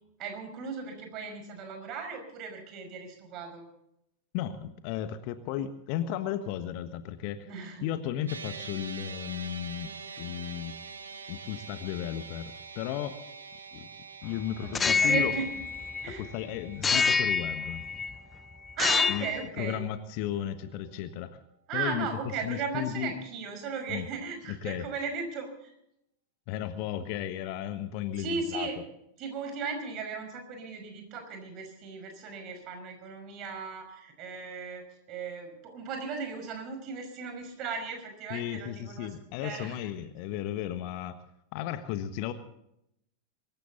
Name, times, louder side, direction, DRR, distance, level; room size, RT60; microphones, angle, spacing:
voice 1, 0.2-3.7 7.4-7.9 14.6-15.5 16.0-16.2 18.8-19.9 21.7-25.7 28.2-28.8 29.2-39.1 39.4-39.9, right 5 dB, 35° right, 5 dB, 5.4 m, -36 dB
voice 2, 4.3-7.5 7.8-9.9 10.2-10.7 11.3-13.2 13.7-13.9 14.2-15.3 16.1-17.8 19.1-19.3 19.6-21.4 21.7-22.1 22.4-23.1 23.9-24.1 24.5-24.8 26.5-28.7 38.3-41.2 41.5-42.3, left 11 dB, 45° left, 11 dB, 1.4 m, -34 dB
sound 1, 8.3-20.7, right 5 dB, 70° right, 1.6 m, -46 dB
sound 2, 14.7-16.3 16.8-18.2 18.7-19.4, left 5 dB, 15° left, 0.5 m, -27 dB
24.0 x 14.5 x 4.0 m, 0.78 s
figure-of-eight pair, 90°, 0 cm